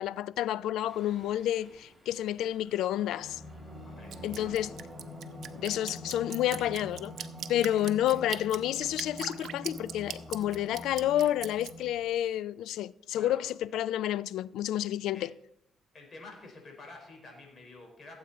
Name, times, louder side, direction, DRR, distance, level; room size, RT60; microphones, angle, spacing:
voice 1, 0.0-3.4 4.2-4.7 5.6-7.1 7.5-15.3, left 12 dB, 85° left, 0.3 m, -30 dB
Singing, 0.8-12.1, left 1 dB, 5° left, 5.4 m, -46 dB
voice 2, 3.7-4.8 7.7-8.2 13.1-13.4 15.1-15.3 15.9-18.2, left 3 dB, 45° left, 4.7 m, -50 dB
Drip, 4.1-11.7, right 9 dB, 70° right, 0.7 m, -41 dB
16.0 x 8.1 x 4.2 m
cardioid pair, 90°, 0 cm